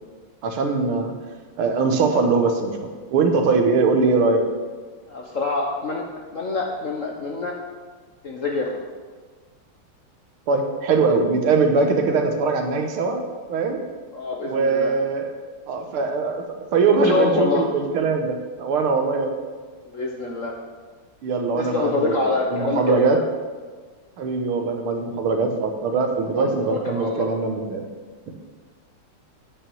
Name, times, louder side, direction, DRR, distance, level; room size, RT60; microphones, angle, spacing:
voice 1, 0.4-1.1 1.6-4.4 10.5-13.2 13.5-13.8 14.5-15.3 15.7-19.3 21.2-23.2 24.2-27.9 28.3-28.4, right 4 dB, 75° right, 4 dB, 1.9 m, -22 dB
voice 2, 5.1-6.0 6.3-7.6 8.2-8.8 14.1-14.9 17.0-17.7 19.9-20.6 21.6-23.2 26.4-27.3, left 3 dB, 55° left, 0 dB, 0.9 m, -25 dB
9.3 x 5.6 x 7.1 m, 1.4 s
omnidirectional pair, 2.4 m